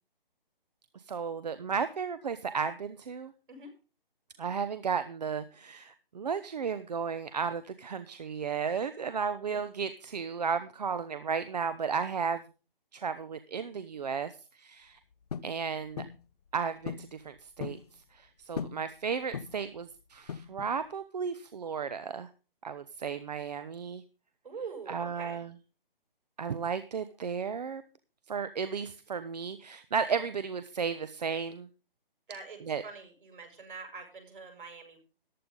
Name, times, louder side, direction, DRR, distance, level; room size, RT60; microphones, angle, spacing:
voice 1, 1.1-3.3 4.4-12.4 12.9-15.0 15.4-16.0 16.5-17.8 18.1-22.3 22.6-24.0 24.9-25.5 26.4-27.8 28.3-31.7 32.7-32.8, right 6 dB, 45° right, 12 dB, 0.9 m, -34 dB
sound 1, 15.3-15.6 16.0-16.2 16.9-17.1 17.4-17.9 18.6-18.9 19.3-19.7 20.3-20.8, left 7 dB, 45° left, 0.7 m, -38 dB
voice 2, 24.4-25.4 32.3-35.0, right 5 dB, 60° right, 3 dB, 6.4 m, -44 dB
14.5 x 11.0 x 3.9 m, 0.34 s
figure-of-eight pair, 160°, 29 cm